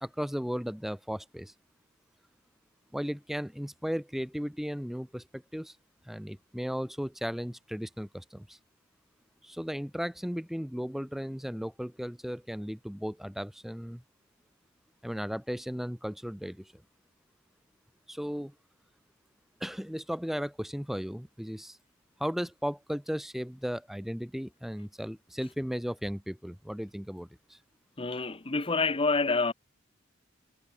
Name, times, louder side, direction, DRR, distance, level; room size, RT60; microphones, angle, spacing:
voice 1, 0.0-1.5 2.9-5.8 6.0-8.6 9.4-14.0 15.0-16.8 18.1-18.5 19.6-21.8 22.2-27.6, equal, ahead, 0.8 m, -35 dB
voice 2, 28.0-29.5, left 3 dB, 30° left, 1.0 m, -27 dB
head